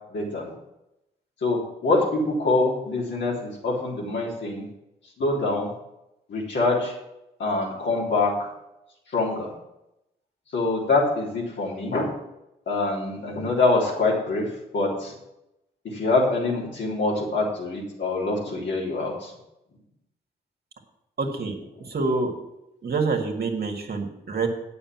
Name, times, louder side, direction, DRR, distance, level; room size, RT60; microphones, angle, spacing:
voice 1, 0.1-0.4 1.4-4.7 5.2-5.7 6.3-6.9 7.4-8.5 9.1-9.5 10.5-12.1 12.7-14.4 14.7-15.1 15.8-19.3, left 2 dB, 70° left, -3 dB, 3.5 m, -25 dB
voice 2, 21.2-21.5 21.9-22.3 22.8-24.5, right 4 dB, 55° right, 2 dB, 2.1 m, -26 dB
8.9 x 6.8 x 7.4 m, 0.87 s
hypercardioid pair, 40°, 20 cm